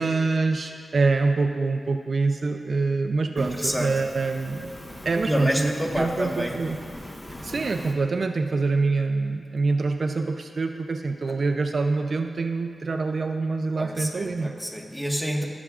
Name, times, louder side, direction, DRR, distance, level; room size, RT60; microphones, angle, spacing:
voice 1, 0.0-4.7 5.0-6.8 7.4-14.6, right 3 dB, 60° right, 6 dB, 0.4 m, -25 dB
Fire, 3.4-8.0, left 1 dB, 25° left, 1.0 m, -40 dB
voice 2, 3.4-3.9 5.2-6.5 11.3-11.4 13.8-15.5, equal, 5° left, 0 dB, 1.3 m, -28 dB
17.5 x 7.1 x 2.4 m, 2.1 s
cardioid pair, 65°, 0 cm